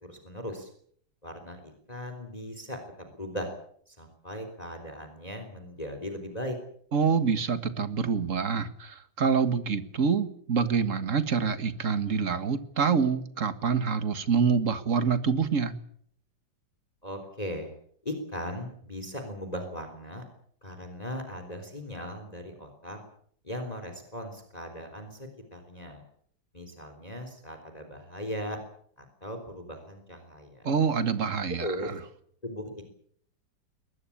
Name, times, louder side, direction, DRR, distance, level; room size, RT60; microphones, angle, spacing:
voice 1, 0.0-0.7 1.2-3.5 3.9-6.6 17.0-17.7 18.1-20.2 20.6-23.0 23.4-26.0 26.5-28.6 29.2-30.6 31.6-31.9 32.4-32.9, equal, 20° left, 6 dB, 3.7 m, -38 dB
voice 2, 6.9-15.8 30.6-32.0, right 6 dB, 40° right, 11 dB, 1.9 m, -26 dB
22.5 x 20.5 x 8.7 m, 0.64 s
omnidirectional pair, 2.1 m